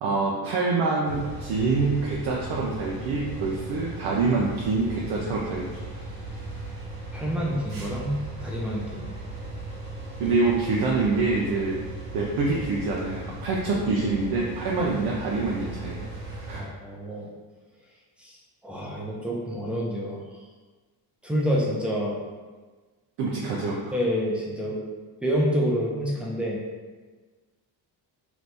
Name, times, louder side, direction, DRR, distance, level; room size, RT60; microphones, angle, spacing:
voice 1, 0.0-5.6 10.2-11.8 12.1-16.0 16.3-16.6 23.2-23.9, right 3 dB, 75° right, -4 dB, 0.6 m, -26 dB
sound 1, 1.0-16.6, right 2 dB, 50° right, 1.0 m, -37 dB
voice 2, 7.1-9.1 16.5-17.3 18.2-18.4 18.6-20.2 21.2-22.2 23.9-24.8 25.2-26.6, equal, 5° right, -4 dB, 0.7 m, -28 dB
2.9 x 2.6 x 3.3 m, 1.4 s
cardioid pair, 100°, 42 cm